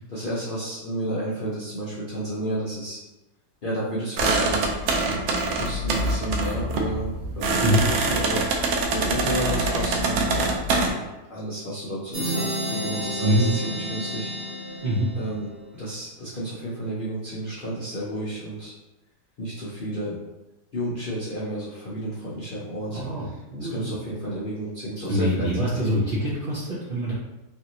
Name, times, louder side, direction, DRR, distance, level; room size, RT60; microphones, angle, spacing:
voice 1, 0.1-3.0 3.6-14.7 15.2-18.7 19.4-20.2 20.7-23.3 23.7-25.9, right 1 dB, 60° left, -7 dB, 0.5 m, -32 dB
sound 1, 4.2-10.9, right 2 dB, 80° right, 1.1 m, -24 dB
sound 2, 12.1-15.7, equal, 25° right, 0.7 m, -31 dB
voice 2, 13.2-13.5 14.8-15.1 22.9-23.2 23.5-23.9 25.1-27.1, equal, 65° right, -8 dB, 0.5 m, -24 dB
3.2 x 2.6 x 2.8 m, 1.0 s
omnidirectional pair, 1.7 m